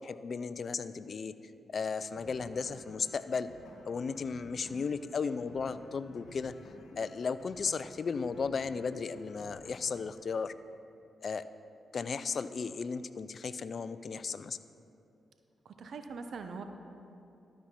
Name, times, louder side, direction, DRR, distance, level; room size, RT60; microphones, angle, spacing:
voice 1, 0.0-1.3 1.7-3.5 3.8-6.6 7.0-10.5 11.2-11.4 11.9-14.6, left 5 dB, 55° left, 14 dB, 0.3 m, -35 dB
sound 1, 2.2-10.2, left 2 dB, 80° left, 0.9 m, -54 dB
voice 2, 15.6-16.6, right 5 dB, 70° right, 6 dB, 0.7 m, -42 dB
12.5 x 5.5 x 4.4 m, 2.7 s
supercardioid pair, 50°, 0 cm